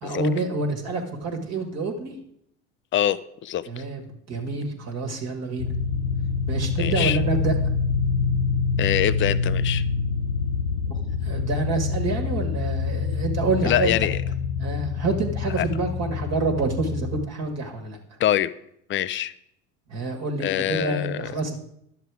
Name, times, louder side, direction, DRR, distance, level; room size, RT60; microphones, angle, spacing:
voice 1, 0.0-2.2 3.7-5.7 6.5-7.5 10.9-13.9 14.6-18.0 19.9-21.6, right 3 dB, 40° right, 3 dB, 1.7 m, -27 dB
voice 2, 2.9-3.8 6.8-7.2 8.8-9.8 13.6-14.2 15.6-15.7 18.2-18.5 18.9-19.3 20.4-21.3, left 11 dB, 30° left, 16 dB, 0.4 m, -24 dB
sound 1, 5.6-17.3, left 5 dB, 90° left, 0.7 m, -26 dB
10.5 x 7.2 x 4.8 m, 0.74 s
hypercardioid pair, 85°, 41 cm